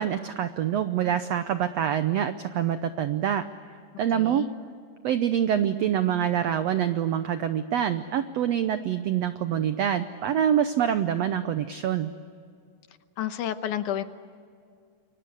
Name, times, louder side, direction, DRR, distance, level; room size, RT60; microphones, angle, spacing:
voice 1, 0.0-3.4 4.0-4.5 5.0-12.1, right 9 dB, 90° right, 10 dB, 1.4 m, -25 dB
voice 2, 4.1-4.5 13.2-14.0, left 11 dB, 70° left, 10 dB, 2.3 m, -30 dB
29.0 x 23.5 x 8.2 m, 2.2 s
omnidirectional pair, 4.0 m